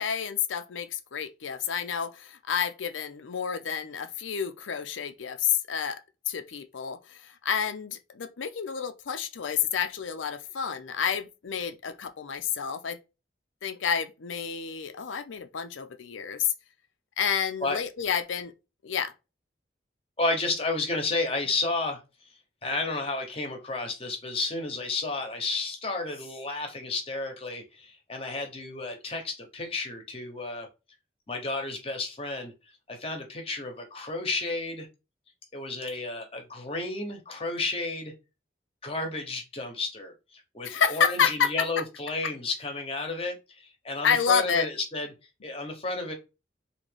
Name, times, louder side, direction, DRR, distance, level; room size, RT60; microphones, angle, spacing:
voice 1, 0.0-13.0 13.6-16.5 17.2-18.5 18.8-19.1 40.6-41.8 44.0-44.7, left 7 dB, 90° left, 0.5 m, -29 dB
voice 2, 20.2-22.0 22.6-30.7 31.3-32.5 32.9-34.9 35.5-38.1 38.8-45.1 45.4-46.1, left 3 dB, 30° left, 1.0 m, -32 dB
3.9 x 2.8 x 3.3 m
head